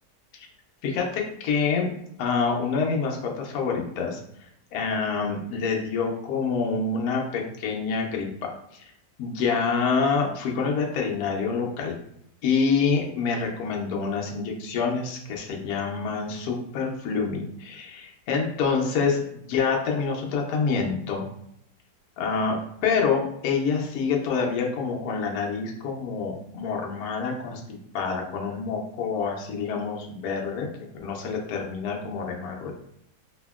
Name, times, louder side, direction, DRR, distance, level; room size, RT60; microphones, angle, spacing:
voice 1, 0.8-1.9 2.2-4.2 4.7-8.3 8.7-8.8 9.2-12.0 12.4-21.2 22.2-22.6 22.8-32.7, left 5 dB, 70° left, 0 dB, 1.1 m, -27 dB
2.8 x 2.7 x 2.2 m, 0.73 s
omnidirectional pair, 1.8 m